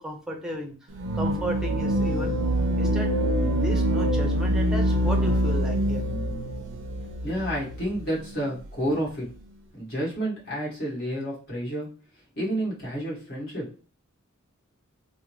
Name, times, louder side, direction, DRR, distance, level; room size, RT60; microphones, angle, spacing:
voice 1, 0.0-2.4 2.8-3.1 3.5-6.1, equal, 5° right, 2 dB, 0.7 m, -34 dB
sound 1, 1.0-8.1, equal, 60° right, 0.4 m, -25 dB
voice 2, 7.0-9.2 9.7-11.9 12.3-13.7, right 1 dB, 50° left, -5 dB, 1.7 m, -30 dB
3.6 x 2.1 x 3.0 m, 0.36 s
head